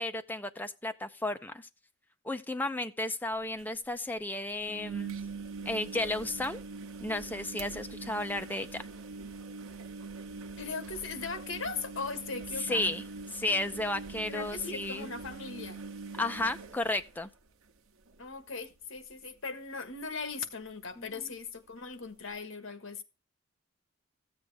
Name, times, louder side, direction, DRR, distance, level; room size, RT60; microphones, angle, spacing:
voice 1, 0.0-1.7 2.2-5.2 5.7-6.6 7.0-8.8 12.6-13.0 13.3-15.1 16.2-17.3 21.0-21.3, left 2 dB, 10° left, 0.6 m, -33 dB
sound 1, 3.3-3.4 3.6-3.7 4.6-17.7 18.1-18.5 18.8-18.9 20.7-20.8, right 4 dB, 85° right, 0.9 m, -43 dB
voice 2, 10.6-12.9 14.2-15.8 18.2-23.0, left 4 dB, 70° left, 1.5 m, -39 dB
14.5 x 7.9 x 3.5 m
head